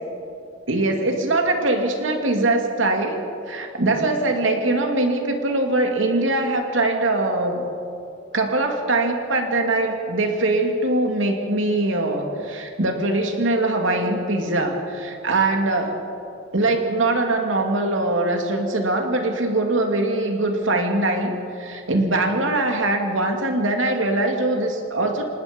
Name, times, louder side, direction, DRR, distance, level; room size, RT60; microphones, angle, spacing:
voice 1, 0.7-3.2 3.5-7.6 8.3-16.0 16.5-25.2, right 2 dB, 80° right, 3 dB, 2.7 m, -22 dB
26.0 x 19.5 x 5.3 m, 2.6 s
head